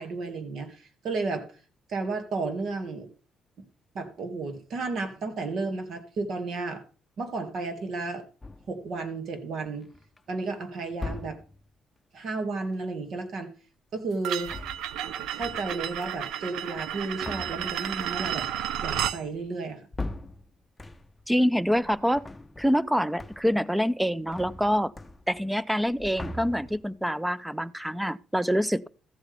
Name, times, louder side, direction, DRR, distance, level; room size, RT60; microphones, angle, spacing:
voice 1, 0.0-1.5 1.9-3.1 3.6-3.7 3.9-6.8 7.2-8.2 8.7-9.9 10.3-11.4 12.1-13.5 13.9-14.5 15.3-18.4 18.8-19.8, right 3 dB, 65° right, 2.1 m, -33 dB
sound 1, 8.4-8.9 9.7-10.2 10.9-11.7 14.3-15.1 15.4-15.9 16.8-21.3 21.7-22.9 23.2-23.7 23.9-25.6 25.8-27.0, left 2 dB, 15° left, 0.9 m, -41 dB
sound 2, 14.2-19.2, right 10 dB, 85° right, 0.6 m, -32 dB
voice 2, 21.3-22.3 22.6-24.9 25.3-28.9, equal, 5° right, 0.5 m, -26 dB
14.0 x 7.9 x 3.4 m
cardioid pair, 90°, 0 cm